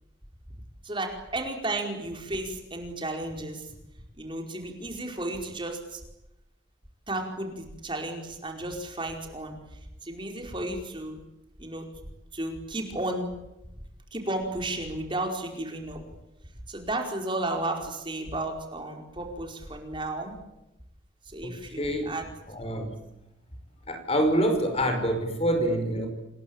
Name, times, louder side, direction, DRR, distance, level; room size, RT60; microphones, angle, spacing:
voice 1, 0.8-3.6 4.2-6.0 7.1-9.5 10.1-11.2 11.6-11.8 12.3-13.3 14.1-16.0 16.7-20.3 21.3-22.3, right 2 dB, 25° right, 3 dB, 4.9 m, -33 dB
voice 2, 21.8-22.1 22.5-22.9 23.9-26.1, right 1 dB, 30° left, 7 dB, 5.2 m, -26 dB
28.0 x 21.5 x 8.9 m, 0.91 s
head